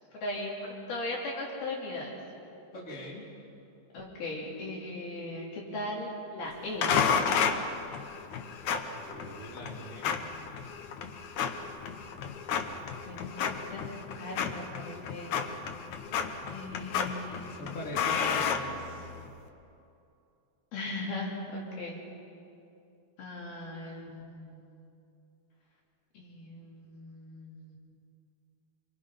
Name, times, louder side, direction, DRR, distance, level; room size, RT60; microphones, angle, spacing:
voice 1, 0.1-2.2 3.9-6.9 13.1-15.3 16.5-17.9 20.7-22.0 23.2-24.8 26.1-27.8, left 2 dB, 60° left, -3 dB, 4.6 m, -38 dB
voice 2, 2.7-3.3 8.9-10.2 17.4-19.1, equal, 20° left, -4 dB, 3.7 m, -42 dB
sound 1, 6.8-19.3, left 6 dB, 80° left, 1.7 m, -32 dB
27.5 x 24.5 x 5.7 m, 2.7 s
omnidirectional pair, 5.2 m